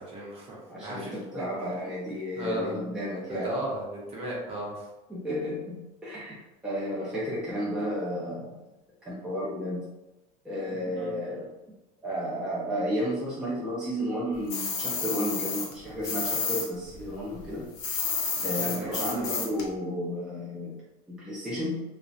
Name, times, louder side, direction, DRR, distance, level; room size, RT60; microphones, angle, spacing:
voice 1, 0.0-1.4 2.4-2.8 3.3-4.8 10.9-11.1 18.3-19.4, right 1 dB, 30° right, -4 dB, 0.7 m, -36 dB
voice 2, 0.7-3.6 5.1-6.4 6.6-8.6 9.0-9.9 10.4-11.5 12.0-17.7 18.4-20.8 21.1-21.8, equal, 5° right, -8 dB, 0.4 m, -32 dB
sound 1, 14.5-16.7 16.9-19.7, left 5 dB, 60° left, 0.6 m, -30 dB
2.6 x 2.0 x 2.4 m, 1.0 s
cardioid pair, 150°, 19 cm